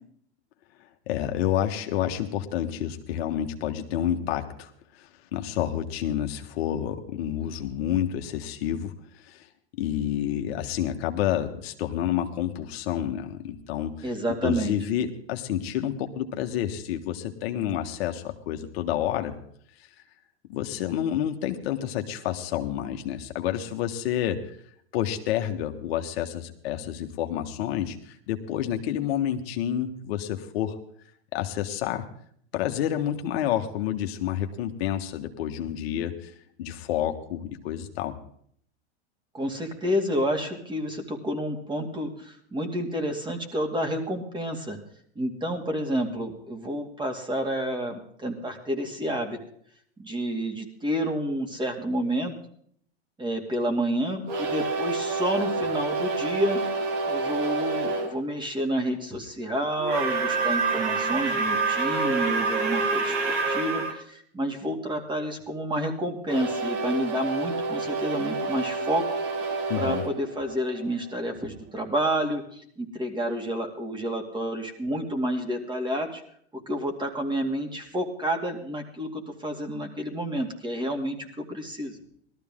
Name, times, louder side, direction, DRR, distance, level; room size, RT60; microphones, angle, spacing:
voice 1, 1.1-8.9 9.2-9.5 9.8-14.1 14.4-19.4 20.5-24.6 24.9-30.7 31.3-32.1 32.5-36.3 36.6-38.2 69.7-70.0, left 11 dB, 65° left, 5 dB, 1.5 m, -29 dB
voice 2, 14.0-14.8 39.3-44.8 45.2-49.4 50.0-52.3 53.2-56.6 57.1-69.1 69.8-76.2 76.5-82.0, equal, 15° right, 4 dB, 2.4 m, -29 dB
sound 1, 54.2-58.1 59.8-63.9 66.3-71.1, right 4 dB, 55° right, 2.9 m, -28 dB
18.0 x 13.5 x 3.7 m, 0.63 s
hypercardioid pair, 115°, 32 cm